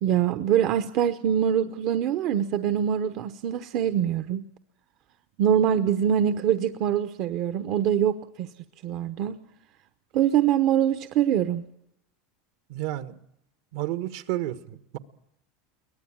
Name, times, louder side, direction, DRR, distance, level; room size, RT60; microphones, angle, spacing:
voice 1, 0.0-4.4 5.4-8.5 8.8-9.4 10.1-11.6, right 9 dB, 55° right, 10 dB, 0.9 m, -24 dB
voice 2, 12.7-13.2 13.7-15.0, right 14 dB, 70° right, 11 dB, 1.3 m, -31 dB
23.0 x 18.0 x 8.7 m, 0.78 s
supercardioid pair, 120°, 0 cm